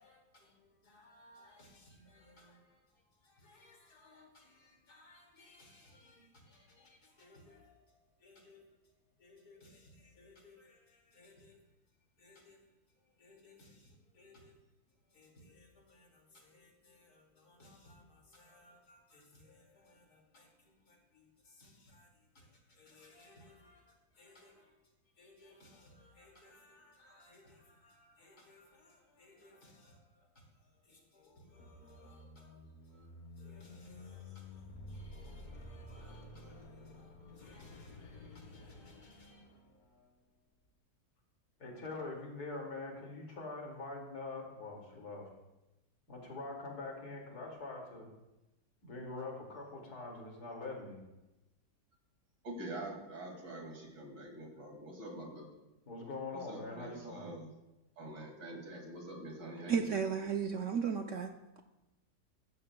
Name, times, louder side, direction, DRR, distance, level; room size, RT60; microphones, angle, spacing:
voice 1, 0.0-2.8 3.2-8.8 9.2-11.6 12.2-12.6 13.2-14.5 15.1-22.1 22.3-24.8 25.2-30.2 30.8-32.6 32.9-33.1 33.4-39.4 41.6-45.3 46.1-48.1 48.8-51.0 55.9-57.2, left 3 dB, 65° left, 0 dB, 2.8 m, -50 dB
sound 1, 31.3-40.1, left 2 dB, 40° left, 0.7 m, -52 dB
voice 2, 52.4-55.5 56.3-57.5 58.0-60.0, right 1 dB, 80° right, 0 dB, 3.0 m, -45 dB
voice 3, 59.7-61.3, right 6 dB, 65° right, 5 dB, 0.8 m, -33 dB
15.0 x 13.5 x 2.2 m, 0.98 s
omnidirectional pair, 1.8 m